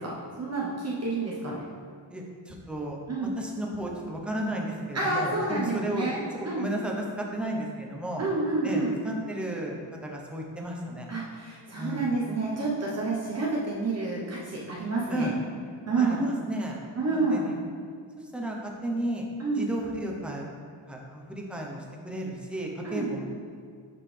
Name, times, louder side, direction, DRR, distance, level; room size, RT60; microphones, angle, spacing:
voice 1, 0.0-1.6 3.1-3.3 4.9-6.6 8.2-8.9 11.1-15.3 15.9-16.2 17.0-17.5 19.4-19.7 22.8-23.1, right 3 dB, 35° right, -5 dB, 0.9 m, -29 dB
voice 2, 2.1-3.0 3.4-6.1 6.4-8.2 8.6-11.1 11.8-12.1 15.1-15.3 15.9-16.8 17.1-17.5 18.2-19.3 19.5-20.4 20.9-23.2, right 1 dB, ahead, -2 dB, 0.8 m, -33 dB
6.8 x 5.7 x 3.3 m, 2.2 s
wide cardioid pair, 130°, 44 cm